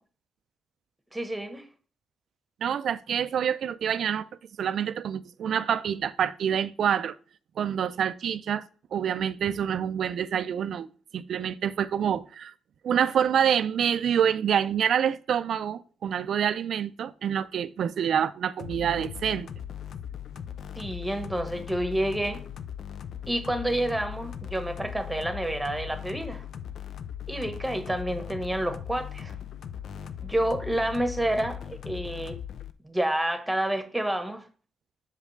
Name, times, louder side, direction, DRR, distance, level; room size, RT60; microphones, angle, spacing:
voice 1, 1.1-1.7 20.7-22.4 23.3-26.4 27.3-29.3 30.2-32.4 32.8-34.4, right 1 dB, 5° right, 1.1 m, -29 dB
voice 2, 2.6-4.3 4.6-7.2 7.6-8.6 8.9-12.5 12.8-19.5, right 8 dB, 65° right, 0.4 m, -27 dB
sound 1, 18.6-32.7, left 9 dB, 65° left, 0.5 m, -39 dB
6.5 x 5.0 x 3.2 m
cardioid pair, 75°, 0 cm